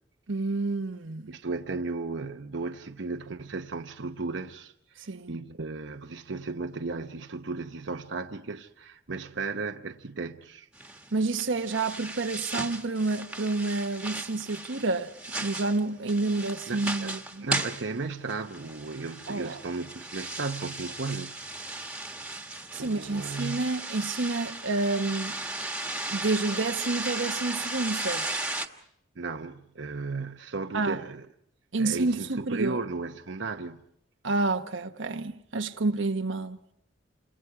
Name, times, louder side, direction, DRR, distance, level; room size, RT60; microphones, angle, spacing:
voice 1, 0.3-1.3 5.1-5.4 11.1-15.1 15.4-17.5 19.3-19.6 22.7-25.3 26.1-28.4 30.7-31.0 31.7-32.8 34.2-36.6, right 3 dB, 90° right, 1.1 m, -29 dB
voice 2, 1.3-10.7 16.7-21.5 22.8-23.8 29.2-31.3 31.8-33.8, right 3 dB, 70° right, 0.9 m, -35 dB
sound 1, 10.7-28.7, right 2 dB, 5° right, 1.5 m, -36 dB
29.5 x 27.0 x 4.8 m
head